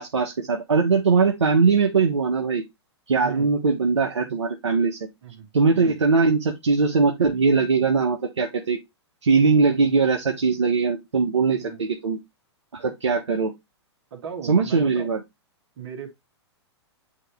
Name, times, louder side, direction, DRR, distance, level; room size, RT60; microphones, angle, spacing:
voice 1, 0.0-2.6 3.1-5.0 5.5-8.8 9.2-12.2 12.7-13.5 14.4-15.2, right 4 dB, 85° right, 1.2 m, -21 dB
voice 2, 14.1-15.1 15.8-16.1, right 7 dB, 60° right, 2.3 m, -36 dB
8.9 x 3.1 x 3.4 m
hypercardioid pair, 115°, 15 cm